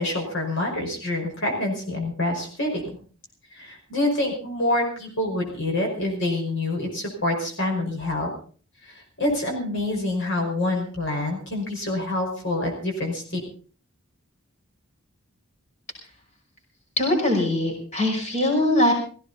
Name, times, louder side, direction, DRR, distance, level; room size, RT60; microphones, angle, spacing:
voice 1, 0.0-2.8 3.5-8.3 8.8-13.2, left 1 dB, 60° left, 1 dB, 5.3 m, -26 dB
voice 2, 17.0-18.9, left 1 dB, 35° left, 0 dB, 5.5 m, -21 dB
18.0 x 16.0 x 4.1 m, 0.42 s
head